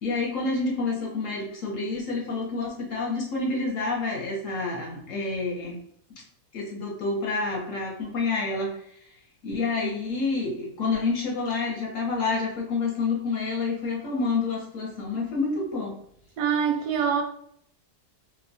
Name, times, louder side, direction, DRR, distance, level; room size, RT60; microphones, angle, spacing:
voice 1, 0.0-5.8 6.5-8.7 9.4-16.0, left 3 dB, 60° left, -1 dB, 1.0 m, -28 dB
voice 2, 16.4-17.2, right 7 dB, 85° right, 3 dB, 1.2 m, -24 dB
2.8 x 2.1 x 2.6 m, 0.69 s
omnidirectional pair, 1.7 m